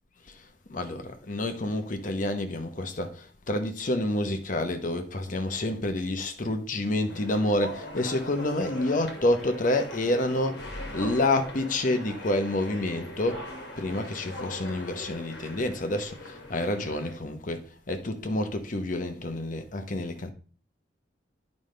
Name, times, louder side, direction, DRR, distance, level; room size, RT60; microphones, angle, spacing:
voice 1, 0.7-13.5 13.8-20.3, left 1 dB, 45° left, 0.9 m, -28 dB
sound 1, 7.1-17.2, left 1 dB, 60° left, 1.7 m, -41 dB
9.5 x 5.3 x 3.3 m
head